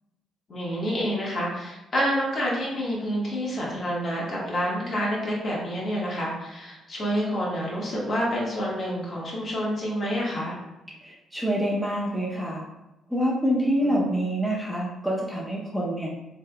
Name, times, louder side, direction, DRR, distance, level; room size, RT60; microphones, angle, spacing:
voice 1, 0.5-10.6 13.8-14.1, equal, 45° left, -5 dB, 1.3 m, -28 dB
voice 2, 11.0-12.6 13.1-16.1, equal, ahead, -4 dB, 0.6 m, -26 dB
3.4 x 3.4 x 2.2 m, 0.96 s
cardioid pair, 90°, 0 cm